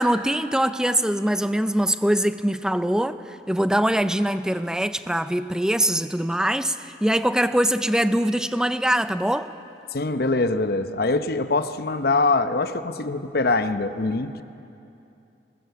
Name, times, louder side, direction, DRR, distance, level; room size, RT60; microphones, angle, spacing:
voice 1, 0.0-9.5, right 1 dB, 5° right, 11 dB, 0.5 m, -23 dB
voice 2, 9.9-14.4, left 3 dB, 55° left, 10 dB, 0.8 m, -23 dB
21.5 x 20.0 x 7.0 m, 2.7 s
head